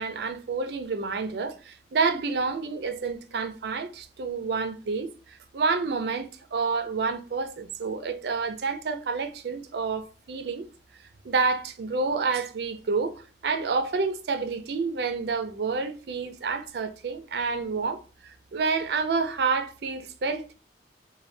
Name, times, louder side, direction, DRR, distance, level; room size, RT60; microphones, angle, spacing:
voice 1, 0.0-10.7 11.2-20.5, right 4 dB, 60° right, 0.4 m, -29 dB
3.2 x 2.2 x 2.5 m
head